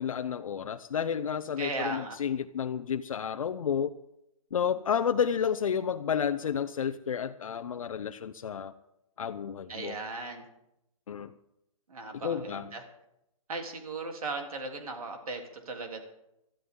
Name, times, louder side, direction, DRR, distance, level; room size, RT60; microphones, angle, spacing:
voice 1, 0.0-3.9 4.5-8.7 9.2-10.0 11.1-11.3 12.1-12.7, left 7 dB, 70° left, 7 dB, 0.7 m, -31 dB
voice 2, 1.6-2.2 9.7-10.4 11.9-12.8 13.5-16.0, right 3 dB, 85° right, 3 dB, 3.4 m, -37 dB
19.0 x 13.0 x 3.8 m, 0.83 s
hypercardioid pair, 175°, 18 cm